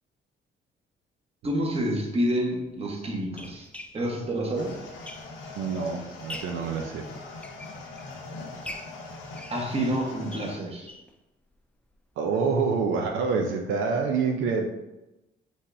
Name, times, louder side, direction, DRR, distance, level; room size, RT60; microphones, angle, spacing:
voice 1, 1.4-3.7 3.9-4.8 9.5-10.9, right 1 dB, 30° right, -1 dB, 1.1 m, -28 dB
sound 1, 1.8-1.9 2.7-5.6 6.0-6.7 7.2-8.2 8.6-11.2 11.5-11.6 11.9-12.0 12.4-12.5, left 1 dB, 5° left, 0.4 m, -44 dB
sound 2, 4.5-10.6, left 3 dB, 80° left, 0.8 m, -41 dB
voice 2, 5.6-7.0 12.2-14.7, right 5 dB, 85° right, 2 dB, 0.5 m, -26 dB
5.3 x 3.4 x 2.6 m, 0.98 s
cardioid pair, 90°, 20 cm